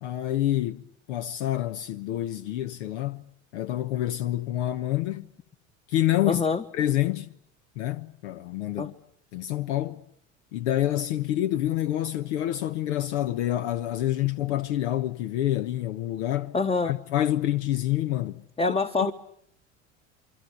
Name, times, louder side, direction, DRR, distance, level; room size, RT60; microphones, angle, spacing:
voice 1, 0.0-3.3 3.5-5.2 5.9-6.4 6.7-7.3 7.8-8.9 9.3-10.0 10.5-16.5 16.8-18.4 19.0-19.1, left 13 dB, 65° left, 1.1 m, -27 dB
voice 2, 6.2-6.6 8.8-8.9 16.5-16.9 18.6-19.1, left 4 dB, 15° left, 1.3 m, -25 dB
28.0 x 24.0 x 8.3 m
hypercardioid pair, 75°, 37 cm